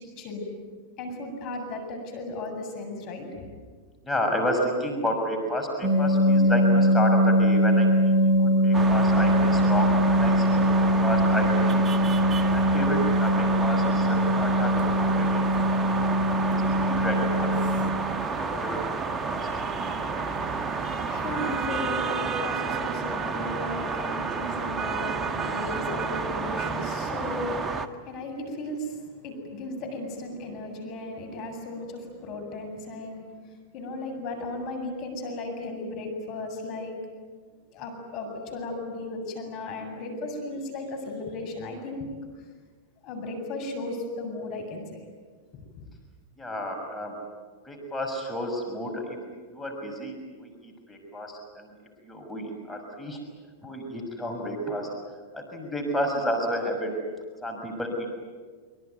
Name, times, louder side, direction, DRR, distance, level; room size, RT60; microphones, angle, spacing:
voice 1, 0.2-0.5 1.0-3.5 20.2-33.3 33.7-36.9 37.7-42.1 43.0-45.0 45.5-45.8, left 2 dB, 50° left, 5 dB, 7.6 m, -35 dB
voice 2, 4.0-7.9 8.2-12.0 12.5-15.7 16.4-17.8 18.1-18.8 19.1-19.5 46.4-47.2 47.6-49.2 49.5-51.7 52.0-53.2 53.6-54.9 55.3-56.9 57.4-58.1, equal, 10° left, 1 dB, 6.1 m, -31 dB
sound 1, 5.8-17.9 19.8-20.0 20.2-20.4 20.8-20.9 21.2-21.5, equal, 45° right, 2.2 m, -22 dB
sound 2, 8.7-27.9, right 4 dB, 25° right, 1.6 m, -30 dB
25.0 x 25.0 x 9.4 m, 1.5 s
hypercardioid pair, 105°, 0 cm